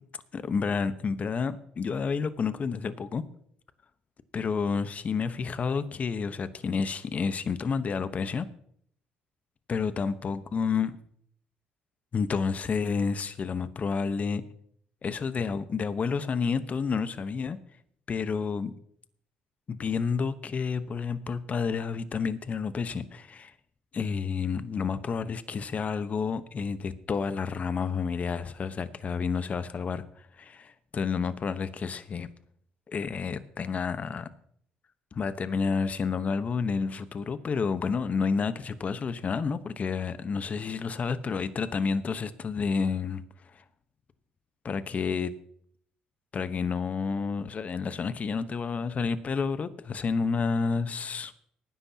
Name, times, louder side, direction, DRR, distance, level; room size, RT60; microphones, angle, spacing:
voice 1, 0.3-3.2 4.3-8.5 9.7-10.9 12.1-14.4 15.0-17.6 18.1-18.7 19.7-23.5 23.9-32.3 32.9-34.3 35.1-43.2 43.5-43.6 44.6-45.3 46.3-51.3, left 5 dB, 45° left, 13 dB, 1.0 m, -30 dB
18.5 x 10.0 x 2.9 m, 0.66 s
supercardioid pair, 65°, 4 cm